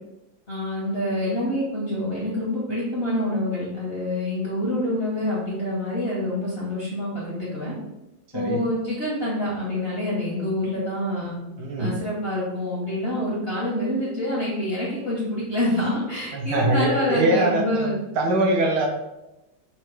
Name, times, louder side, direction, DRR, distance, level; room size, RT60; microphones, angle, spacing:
voice 1, 0.5-7.7 8.3-11.4 11.8-18.0, left 1 dB, 50° left, -6 dB, 0.7 m, -26 dB
voice 2, 11.6-12.0 16.3-18.9, right 1 dB, 70° right, 1 dB, 1.1 m, -23 dB
3.7 x 2.2 x 4.5 m, 0.94 s
omnidirectional pair, 2.1 m